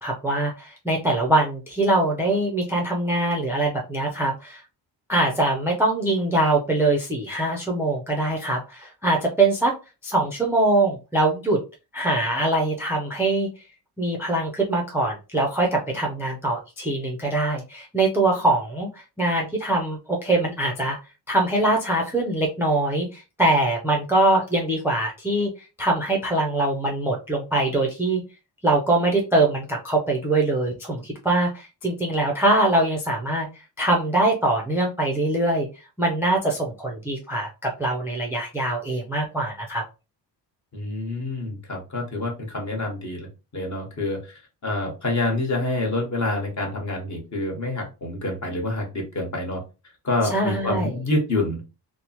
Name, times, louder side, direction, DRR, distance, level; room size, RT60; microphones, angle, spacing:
voice 1, 0.0-4.6 5.1-9.7 10.0-11.6 11.9-13.5 14.0-21.0 21.3-25.5 25.8-28.2 28.6-33.5 33.8-35.7 36.0-39.8 50.3-50.9, right 2 dB, 5° right, -1 dB, 0.4 m, -23 dB
voice 2, 40.7-43.3 43.5-49.6 50.0-51.6, left 2 dB, 45° left, 0 dB, 1.1 m, -27 dB
3.0 x 2.0 x 2.8 m, 0.29 s
cardioid pair, 150°, 41 cm